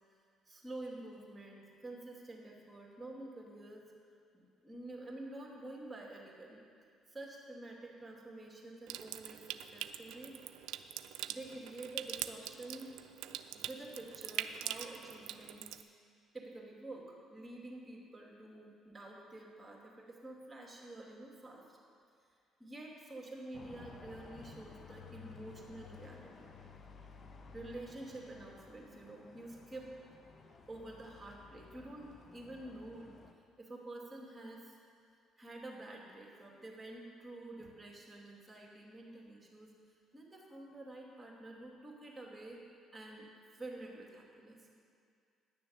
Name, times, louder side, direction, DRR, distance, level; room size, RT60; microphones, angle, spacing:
voice 1, 0.5-3.8 4.3-6.6 7.1-10.4 11.3-12.9 13.5-15.9 16.3-21.8 22.6-26.5 27.5-29.9 30.7-33.1 33.6-34.8 35.4-39.7 40.1-42.6 42.9-43.3 43.5-44.7, right 2 dB, 20° right, -2 dB, 2.6 m, -49 dB
Water tap faucet / Sink (filling or washing) / Trickle dribble, 8.9-15.8, right 12 dB, 75° right, 0.3 m, -43 dB
sound 1, 23.5-33.3, left 5 dB, 50° left, 0.8 m, -55 dB
10.0 x 6.8 x 7.0 m, 2.3 s
hypercardioid pair, 55°, 0 cm